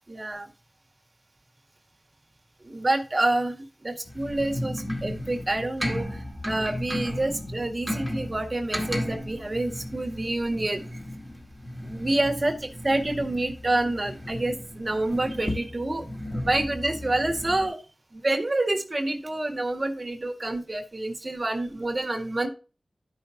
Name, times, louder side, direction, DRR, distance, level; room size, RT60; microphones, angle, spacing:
voice 1, 0.1-0.5 2.6-10.8 11.8-16.1 16.3-17.8 18.1-22.5, right 2 dB, 40° right, 4 dB, 1.7 m, -28 dB
sound 1, 4.1-17.7, left 1 dB, 5° left, 2.1 m, -35 dB
12.5 x 5.7 x 2.7 m, 0.35 s
cardioid pair, 45°, 0 cm